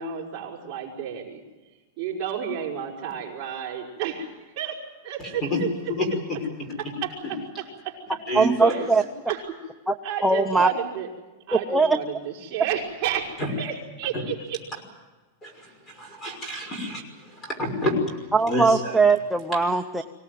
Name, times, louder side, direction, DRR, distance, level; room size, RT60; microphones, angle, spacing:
voice 1, 0.0-1.4 2.0-5.7 6.8-8.2 8.7-8.8 9.3-9.4 10.0-11.1 11.5-13.3 13.6-14.6, right 9 dB, 30° right, -4 dB, 5.4 m, -31 dB
voice 2, 5.2-5.6 5.9-6.7 8.3-8.8 13.4-13.5 14.1-14.2 15.4-17.0 17.3-18.0 18.5-19.0, left 1 dB, 15° left, 5 dB, 5.7 m, -28 dB
voice 3, 8.3-9.0 9.9-10.0 10.2-10.7 11.5-12.0 18.3-20.0, right 3 dB, ahead, 3 dB, 0.8 m, -20 dB
25.0 x 18.0 x 9.4 m, 1.2 s
supercardioid pair, 170°, 0 cm